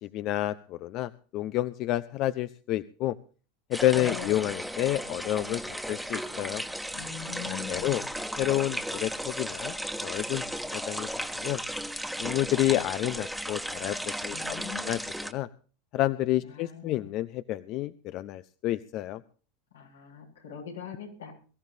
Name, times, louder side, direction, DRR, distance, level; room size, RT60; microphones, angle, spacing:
voice 1, 0.0-3.2 3.7-6.6 7.5-8.0 8.4-9.8 10.0-10.4 10.7-11.6 12.2-15.5 15.9-19.2, left 15 dB, 50° left, 15 dB, 0.7 m, -29 dB
sound 1, 3.7-15.3, equal, ahead, 1.4 m, -35 dB
voice 2, 4.0-4.5 6.9-8.1 14.3-14.9 16.4-17.1 19.7-21.3, left 7 dB, 90° left, 1 dB, 6.9 m, -42 dB
23.0 x 14.5 x 2.7 m, 0.39 s
hypercardioid pair, 90°, 0 cm